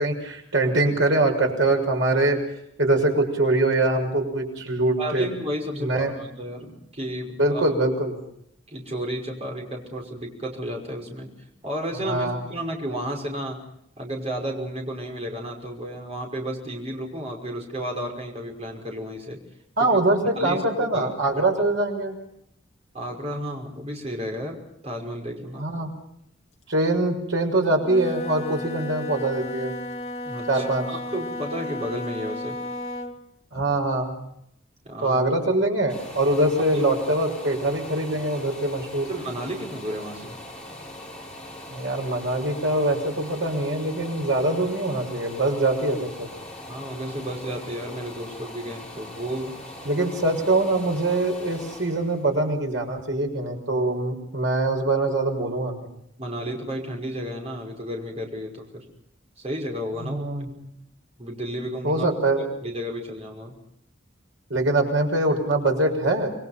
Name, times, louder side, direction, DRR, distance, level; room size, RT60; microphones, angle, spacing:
voice 1, 0.0-2.4 2.8-5.3 5.8-6.1 7.4-8.2 11.9-12.4 19.8-22.2 25.6-25.9 26.7-29.7 30.5-30.8 33.5-34.1 35.0-39.1 41.7-46.3 49.8-55.9 60.0-60.5 61.8-62.4 64.5-66.3, right 2 dB, 75° right, 2 dB, 6.3 m, -23 dB
voice 2, 5.0-7.6 8.7-11.3 11.6-13.6 14.0-19.4 19.8-20.0 20.4-20.6 20.9-21.1 22.9-24.6 24.8-25.7 30.2-32.6 34.8-35.2 36.7-36.8 39.1-40.4 46.7-49.5 56.2-58.8 59.4-60.3 61.2-62.1 62.6-63.6, equal, 35° right, 0 dB, 5.5 m, -32 dB
Wind instrument woodwind instrument, 27.8-33.2, left 1 dB, 30° left, 2.6 m, -34 dB
sound 1, 35.9-53.6 54.0-54.1, left 1 dB, 5° left, 7.0 m, -41 dB
27.5 x 21.5 x 5.9 m, 0.74 s
head